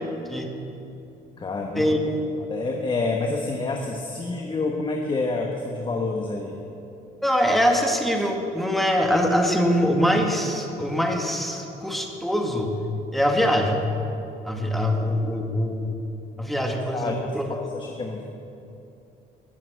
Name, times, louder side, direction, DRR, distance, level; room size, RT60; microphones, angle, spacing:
voice 1, 1.4-2.0 2.4-6.6 16.7-17.2 17.5-18.3, left 3 dB, 30° left, 2 dB, 1.3 m, -28 dB
voice 2, 7.2-12.8 13.1-13.9 14.4-15.9 16.4-17.5, equal, ahead, 2 dB, 1.8 m, -23 dB
19.0 x 7.5 x 7.7 m, 2.8 s
cardioid pair, 110°, 17 cm